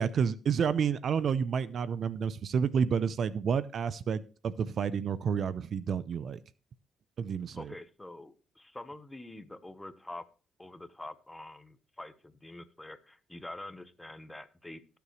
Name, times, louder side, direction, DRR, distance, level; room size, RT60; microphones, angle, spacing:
voice 1, 0.0-6.4 7.2-7.7, right 7 dB, 55° right, 0.6 m, -30 dB
voice 2, 7.5-10.2 10.6-15.0, left 2 dB, 10° left, 1.1 m, -46 dB
17.5 x 6.9 x 3.2 m
cardioid pair, 90°, 0 cm